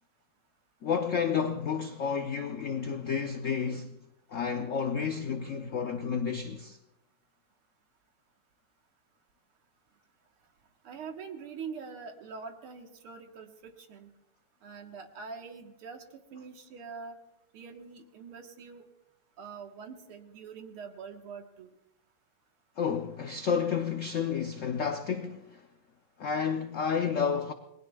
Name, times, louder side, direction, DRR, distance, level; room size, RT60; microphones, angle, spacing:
voice 1, 0.8-4.0 4.3-6.8 22.8-25.7 26.2-27.5, left 6 dB, 85° left, 0.6 m, -31 dB
voice 2, 10.8-14.1 14.6-16.0 16.3-17.2 17.5-18.9 19.4-21.7, right 5 dB, 90° right, 2.3 m, -44 dB
29.0 x 20.5 x 2.3 m
omnidirectional pair, 2.3 m